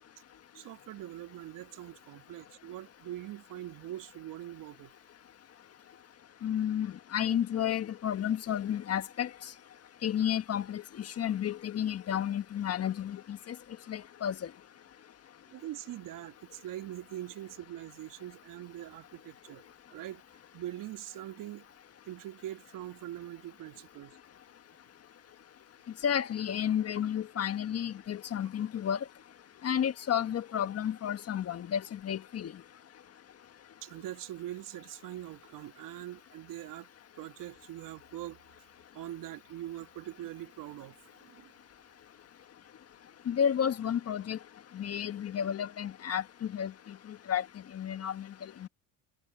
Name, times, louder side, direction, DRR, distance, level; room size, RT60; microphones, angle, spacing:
voice 1, 0.5-4.9 15.5-19.6 19.9-20.2 20.5-21.7 22.1-24.2 33.8-36.9 37.2-38.4 38.9-41.5, right 13 dB, 55° right, 2.0 m, -43 dB
voice 2, 6.4-9.3 10.0-13.5 13.9-14.5 26.0-29.0 29.6-32.5 43.3-44.4 44.7-46.7 47.1-47.4 47.7-48.3 48.6-48.7, left 9 dB, 40° left, 1.6 m, -31 dB
supercardioid pair, 90°, 39 cm